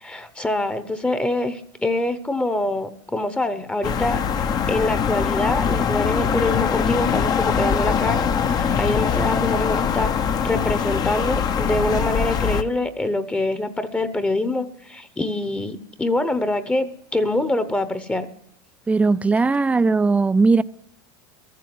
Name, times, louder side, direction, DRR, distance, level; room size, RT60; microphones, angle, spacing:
voice 1, 0.0-4.2 4.7-10.1 10.4-18.3, left 2 dB, 10° left, 1.0 m, -25 dB
sound 1, 3.8-12.6, left 7 dB, 35° left, 0.9 m, -22 dB
voice 2, 18.9-20.6, right 3 dB, 10° right, 0.4 m, -18 dB
13.5 x 7.6 x 9.6 m
supercardioid pair, 105°, 12 cm